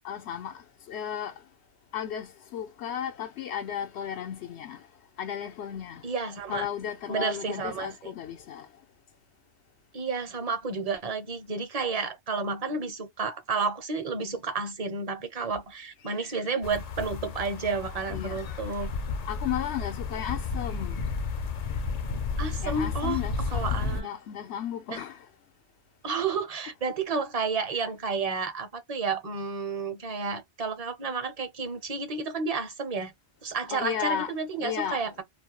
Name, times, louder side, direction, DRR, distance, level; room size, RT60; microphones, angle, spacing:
voice 1, 0.0-1.3 1.9-4.8 5.2-6.0 6.5-8.7 16.1-16.3 18.1-18.9 19.2-21.0 22.6-25.3 33.7-34.3 34.6-35.0, left 9 dB, 85° left, 0.9 m, -34 dB
voice 2, 6.0-6.7 7.1-8.1 9.9-18.9 22.4-23.2 23.5-24.1 24.9-25.0 26.0-33.1 33.4-35.2, right 4 dB, 40° right, 0.7 m, -31 dB
sound 1, 16.6-24.0, left 4 dB, 55° left, 0.5 m, -32 dB
2.4 x 2.1 x 2.9 m
omnidirectional pair, 1.1 m